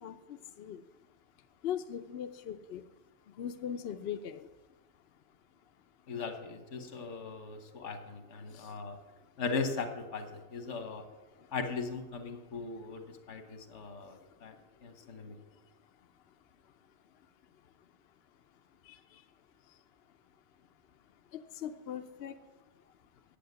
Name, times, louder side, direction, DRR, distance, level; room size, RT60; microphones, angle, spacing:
voice 1, 0.0-0.8 1.6-2.8 3.4-4.5 8.5-8.7 18.9-19.0 21.3-22.4, left 9 dB, 65° left, 8 dB, 0.8 m, -40 dB
voice 2, 6.1-9.0 9.4-11.0 11.5-14.5 14.8-15.4, left 4 dB, 85° left, 7 dB, 1.5 m, -38 dB
8.6 x 8.5 x 8.1 m, 1.1 s
omnidirectional pair, 1.2 m